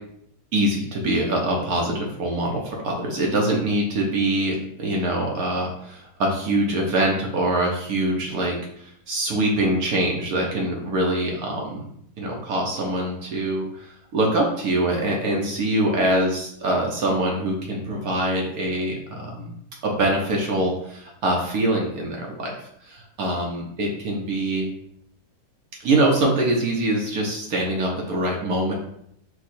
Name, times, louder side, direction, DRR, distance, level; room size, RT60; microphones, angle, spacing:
voice 1, 0.5-11.9 12.2-19.5 19.8-24.7 25.8-28.7, right 1 dB, 65° right, -1 dB, 1.1 m, -24 dB
4.5 x 2.3 x 4.2 m, 0.72 s
omnidirectional pair, 1.8 m